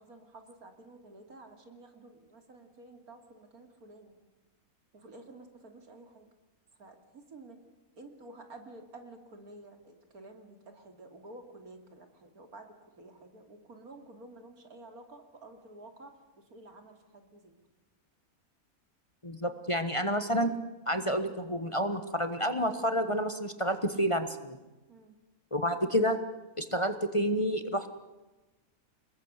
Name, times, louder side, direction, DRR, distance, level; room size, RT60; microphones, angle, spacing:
voice 1, 0.0-4.2 4.9-6.3 6.8-7.6 8.0-12.7 13.0-17.5 24.9-25.1, right 2 dB, 80° right, 5 dB, 3.4 m, -51 dB
voice 2, 19.2-20.5 20.9-24.6 25.5-26.2 26.6-27.9, equal, 20° left, 9 dB, 1.3 m, -29 dB
26.5 x 21.0 x 8.1 m, 1.1 s
omnidirectional pair, 1.5 m